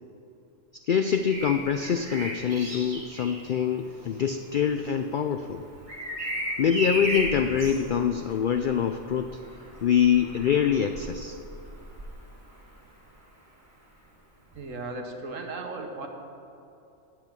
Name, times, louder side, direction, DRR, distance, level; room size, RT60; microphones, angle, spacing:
voice 1, 0.7-5.6 6.6-9.3 9.8-11.4, left 8 dB, 85° left, 7 dB, 0.4 m, -25 dB
Bird vocalization bird call bird song, 1.0-12.8 14.5-14.7, right 1 dB, 35° right, 2.6 m, -36 dB
voice 2, 14.5-16.1, right 3 dB, 70° right, 3 dB, 1.5 m, -36 dB
8.8 x 8.0 x 8.7 m, 2.7 s
omnidirectional pair, 1.4 m